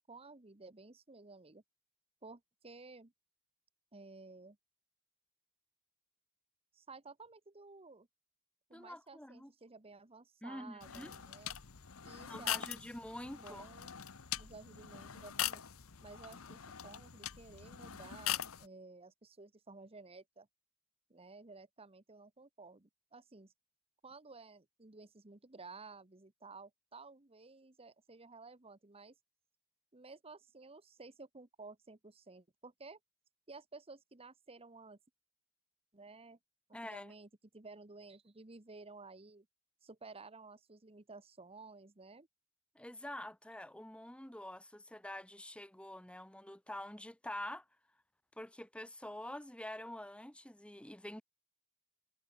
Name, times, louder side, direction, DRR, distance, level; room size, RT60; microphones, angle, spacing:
voice 1, 0.1-1.6 2.2-3.1 3.9-4.6 6.7-8.1 8.7-11.6 12.0-12.7 13.2-13.9 14.4-15.6 16.0-20.5 21.1-23.5 24.0-29.1 29.9-33.0 33.5-35.0 35.9-36.4 36.7-39.5 39.8-42.3, right 3 dB, 30° right, 1.2 m, -54 dB
voice 2, 8.7-9.5 10.4-11.1 12.2-13.7 36.7-37.1 42.7-47.6 48.4-51.2, left 1 dB, 5° left, 1.3 m, -46 dB
sound 1, 10.8-18.7, left 11 dB, 80° left, 1.1 m, -42 dB
head